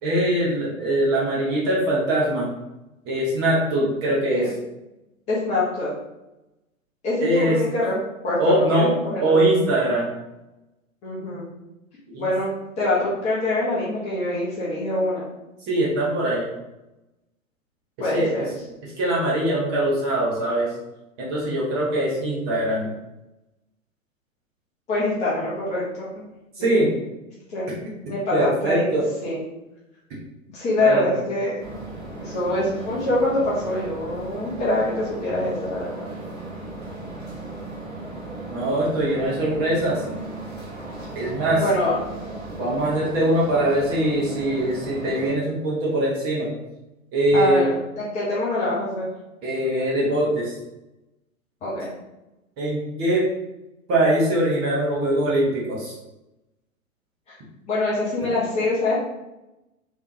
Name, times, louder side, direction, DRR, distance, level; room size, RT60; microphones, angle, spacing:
voice 1, 0.0-2.5 3.0-4.5 7.2-7.6 8.4-10.1 12.1-12.3 15.7-16.5 18.1-18.4 19.0-20.7 21.2-22.9 26.6-26.9 28.3-29.1 30.8-31.2 38.5-40.0 41.1-41.6 42.6-46.5 47.1-47.7 49.4-50.5 52.6-53.3 53.9-55.9, right 1 dB, 20° right, -6 dB, 0.8 m, -22 dB
voice 2, 5.3-5.9 7.0-7.9 8.2-9.5 11.0-11.5 12.2-15.2 18.0-18.5 24.9-26.3 26.6-26.7 27.5-27.8 28.1-28.9 29.2-29.4 30.5-31.6 32.2-36.1 41.5-42.0 47.3-49.1 51.6-51.9 57.3-57.4 57.7-58.9, left 1 dB, 15° left, -7 dB, 0.8 m, -25 dB
sound 1, 31.6-45.3, right 2 dB, 5° right, 0.3 m, -36 dB
3.3 x 3.2 x 2.6 m, 0.95 s
figure-of-eight pair, 110°, 42 cm